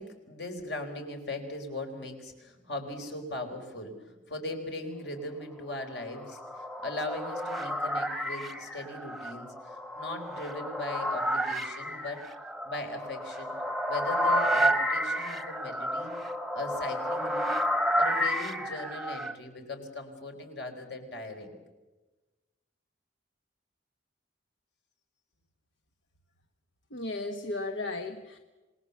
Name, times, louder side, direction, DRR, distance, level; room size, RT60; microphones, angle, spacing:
voice 1, 0.0-12.2 12.6-13.5 13.9-16.1 16.5-17.5 18.0-21.6, left 2 dB, 70° left, 4 dB, 4.2 m, -39 dB
sound 1, 5.9-19.3, equal, ahead, 1.0 m, -31 dB
voice 2, 26.9-28.4, left 2 dB, 85° left, 7 dB, 1.3 m, -35 dB
27.5 x 20.0 x 7.1 m, 1.2 s
head